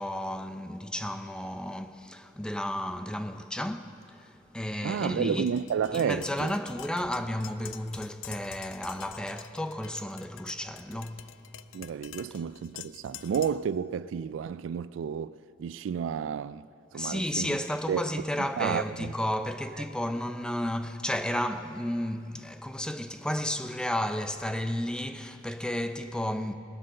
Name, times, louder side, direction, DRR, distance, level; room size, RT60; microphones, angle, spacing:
voice 1, 0.0-5.5 5.9-11.3 16.9-26.5, left 1 dB, 5° left, 0.4 m, -32 dB
voice 2, 4.8-6.5 11.7-15.3 15.6-16.7 16.9-17.6 17.9-18.0 18.6-19.1, right 7 dB, 90° right, 0.3 m, -31 dB
Tap, 5.5-13.7, left 11 dB, 80° left, 0.4 m, -47 dB
19.0 x 7.6 x 6.5 m
head